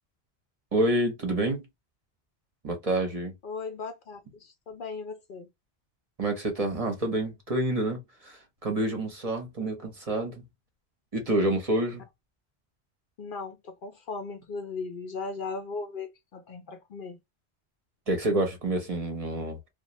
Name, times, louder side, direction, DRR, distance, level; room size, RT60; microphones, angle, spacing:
voice 1, 0.7-1.6 2.6-3.3 6.2-10.4 11.1-12.0 18.1-19.6, right 1 dB, 35° right, 0.9 m, -28 dB
voice 2, 3.4-5.5 13.2-17.2, left 4 dB, 60° left, 0.7 m, -37 dB
2.4 x 2.2 x 2.9 m
omnidirectional pair, 1.1 m